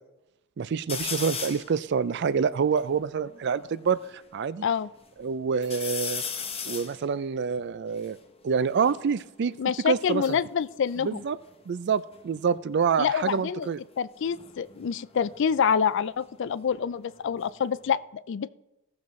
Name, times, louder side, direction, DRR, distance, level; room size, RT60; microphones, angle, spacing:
voice 1, 0.6-4.0 4.3-4.7 5.2-6.2 6.7-8.2 8.4-9.6 9.9-10.4 11.0-11.4 11.7-13.8, right 6 dB, 55° right, 16 dB, 0.4 m, -27 dB
sound 1, 0.9-1.7 2.3-2.4 2.6-4.1 4.6-5.2 5.6-9.0 9.9-11.8 12.1-12.6 14.2-16.8 17.2-17.9, left 6 dB, 30° left, 0.9 m, -38 dB
voice 2, 9.6-11.2 13.0-13.7 14.0-18.5, left 7 dB, 60° left, 17 dB, 0.4 m, -27 dB
17.0 x 6.9 x 3.2 m, 0.94 s
head